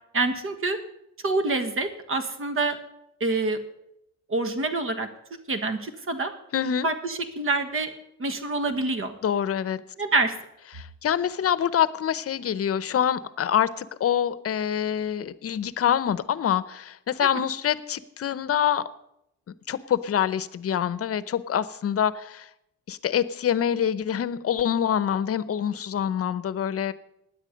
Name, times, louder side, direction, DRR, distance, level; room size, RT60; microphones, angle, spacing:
voice 1, 0.1-0.8 1.2-2.8 3.2-3.6 4.3-5.1 5.5-6.3 6.8-7.9 8.2-9.1 10.0-10.3 17.2-17.3, right 3 dB, 45° right, 9 dB, 1.7 m, -26 dB
voice 2, 6.5-6.9 9.2-9.8 10.7-18.8 19.7-22.5 22.9-26.9, left 9 dB, 50° left, 16 dB, 0.8 m, -25 dB
16.0 x 10.0 x 5.2 m, 0.81 s
cardioid pair, 90°, 30 cm